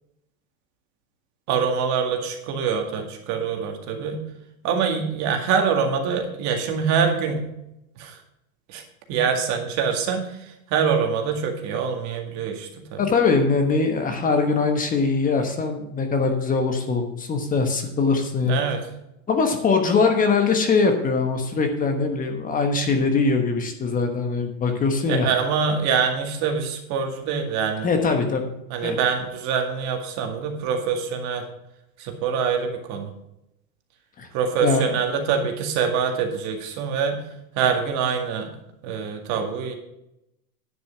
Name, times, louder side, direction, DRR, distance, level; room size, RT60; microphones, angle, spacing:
voice 1, 1.5-4.2 4.6-7.5 8.0-8.2 8.7-8.8 9.1-10.4 10.7-13.0 18.4-18.8 25.1-27.9 28.7-31.4 32.0-33.1 34.3-37.2 37.6-38.5 38.8-39.7, right 6 dB, 40° right, 3 dB, 2.1 m, -24 dB
voice 2, 13.0-18.6 19.3-25.3 27.8-28.4 28.8-29.0 34.2-34.3 34.6-34.9, left 4 dB, 20° left, 5 dB, 1.2 m, -22 dB
10.0 x 6.8 x 5.8 m, 0.84 s
supercardioid pair, 145°, 41 cm